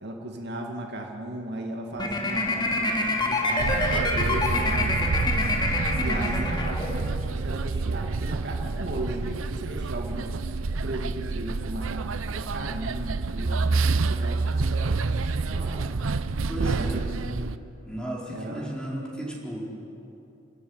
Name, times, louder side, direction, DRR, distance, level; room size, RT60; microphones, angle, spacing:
voice 1, 0.0-5.2 6.0-10.3 10.7-13.6 14.0-16.1 16.6-17.6 18.3-18.8, right 1 dB, 60° right, 1 dB, 2.0 m, -36 dB
sound 1, 2.0-7.2, left 2 dB, 20° left, 2.4 m, -26 dB
sound 2, 3.6-17.6, right 3 dB, 90° right, 0.7 m, -29 dB
sound 3, 13.4-16.6, right 3 dB, 35° right, 0.5 m, -27 dB
voice 2, 16.5-17.1 17.9-19.7, right 1 dB, 5° left, -4 dB, 4.4 m, -34 dB
28.5 x 13.5 x 9.5 m, 2.9 s
head